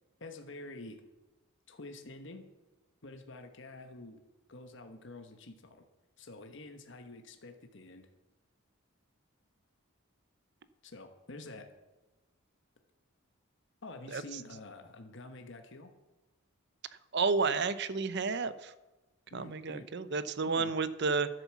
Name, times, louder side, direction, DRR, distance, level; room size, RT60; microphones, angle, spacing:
voice 1, 0.2-1.0 1.7-2.4 3.0-4.2 4.5-5.8 6.2-8.1 10.8-11.7 13.8-15.9 19.3-19.9 20.5-20.7, left 2 dB, 55° left, 6 dB, 1.1 m, -48 dB
voice 2, 17.1-18.7 19.3-21.3, right 4 dB, 50° right, 14 dB, 0.6 m, -31 dB
11.0 x 8.1 x 7.3 m, 1.1 s
head